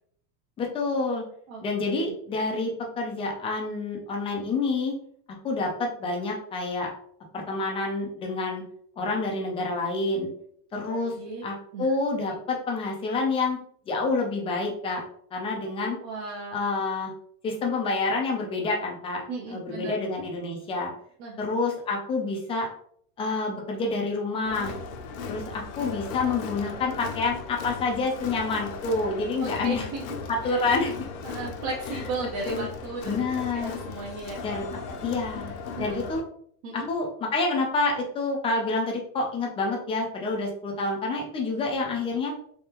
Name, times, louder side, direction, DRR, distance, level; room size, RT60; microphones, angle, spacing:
voice 1, 0.6-1.2 1.6-4.9 5.4-6.9 7.3-8.6 9.0-10.3 10.7-11.1 11.4-13.6 13.9-15.0 15.3-16.0 16.5-17.1 17.4-20.9 21.4-22.7 23.2-24.7 25.3-29.9 30.3-30.9 32.5-32.7 33.1-33.7 34.4-35.5 35.8-36.2 36.7-42.3, left 3 dB, 15° left, 0 dB, 0.3 m, -28 dB
voice 2, 10.9-11.4 11.7-12.4 16.0-16.5 19.3-19.9 21.2-21.4 29.4-30.0 30.5-30.6 31.2-34.6 35.8-35.9 36.6-36.9, right 3 dB, 50° right, -2 dB, 0.8 m, -36 dB
Crowd, 24.4-36.2, left 5 dB, 60° left, 0.7 m, -37 dB
3.5 x 3.3 x 2.9 m, 0.62 s
supercardioid pair, 150°, 46 cm